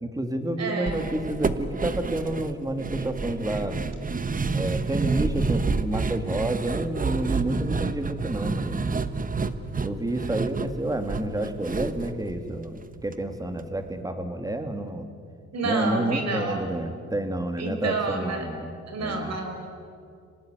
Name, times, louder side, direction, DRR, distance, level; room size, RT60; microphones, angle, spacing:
voice 1, 0.0-3.8 4.5-8.8 9.8-15.1 15.6-18.7 19.0-19.4, right 1 dB, 10° right, 7 dB, 2.5 m, -30 dB
voice 2, 0.6-0.9 15.5-16.6 17.6-18.4 18.9-19.5, right 3 dB, 60° right, 4 dB, 5.1 m, -29 dB
sound 1, 0.9-13.1 13.4-13.5 13.9-14.0, right 4 dB, 25° right, 1.2 m, -29 dB
26.0 x 18.5 x 9.3 m, 2.3 s
cardioid pair, 90°, 30 cm